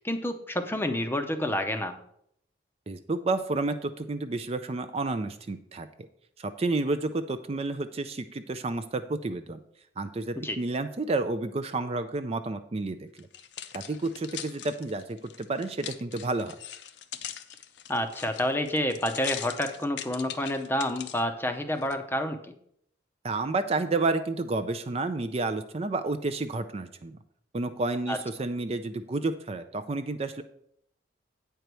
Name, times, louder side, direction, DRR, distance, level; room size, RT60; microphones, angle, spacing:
voice 1, 0.0-2.0 10.4-10.6 17.9-22.5 28.1-28.2, left 1 dB, 10° left, 7 dB, 0.6 m, -29 dB
voice 2, 2.9-5.9 6.4-9.6 10.0-13.3 13.7-16.6 23.2-27.2 27.5-30.4, right 3 dB, 30° right, 10 dB, 0.4 m, -30 dB
sound 1, 13.2-21.2 21.8-21.9, left 10 dB, 60° left, 0.6 m, -41 dB
9.0 x 4.6 x 6.8 m, 0.70 s
head